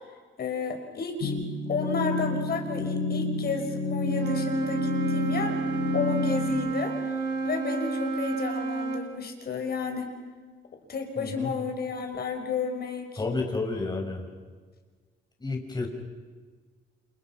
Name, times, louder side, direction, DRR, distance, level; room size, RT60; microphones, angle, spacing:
voice 1, 0.4-1.4 1.7-5.6 5.9-7.0 7.4-10.1 10.9-13.1, left 4 dB, 50° left, 5 dB, 5.7 m, -32 dB
sound 1, 1.2-6.5, left 3 dB, 80° left, 3.9 m, -30 dB
Wind instrument woodwind instrument, 4.1-9.1, right 4 dB, 65° right, 4.7 m, -30 dB
voice 2, 11.2-11.5 13.2-14.3 15.4-15.9, left 3 dB, 20° left, 1 dB, 5.9 m, -31 dB
29.5 x 28.5 x 5.9 m, 1.5 s
cardioid pair, 90°, 20 cm